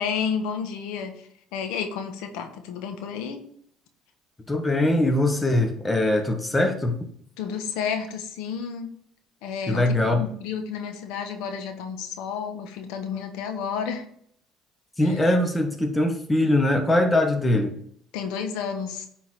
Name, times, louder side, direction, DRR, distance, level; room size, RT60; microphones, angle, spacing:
voice 1, 0.0-3.4 7.4-8.9 9.4-14.0 15.0-15.2 18.1-19.1, left 6 dB, 80° left, 6 dB, 1.2 m, -31 dB
voice 2, 4.5-7.0 9.7-10.3 15.0-17.7, left 1 dB, 15° left, 5 dB, 1.4 m, -22 dB
9.3 x 3.9 x 4.7 m, 0.65 s
supercardioid pair, 90°, 0 cm